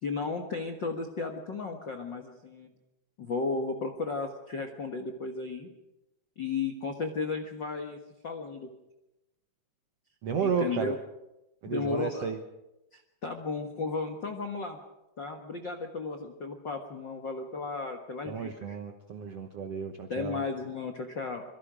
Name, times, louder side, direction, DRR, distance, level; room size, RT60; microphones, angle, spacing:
voice 1, 0.0-2.7 3.2-5.7 6.4-8.7 10.4-10.9 11.7-12.3 12.9-14.8 15.2-18.8 20.1-21.4, left 4 dB, 75° left, 4 dB, 1.0 m, -34 dB
voice 2, 10.2-10.9 11.6-12.4 18.3-20.4, right 6 dB, 75° right, 6 dB, 1.4 m, -32 dB
26.0 x 23.0 x 5.1 m, 0.95 s
omnidirectional pair, 4.7 m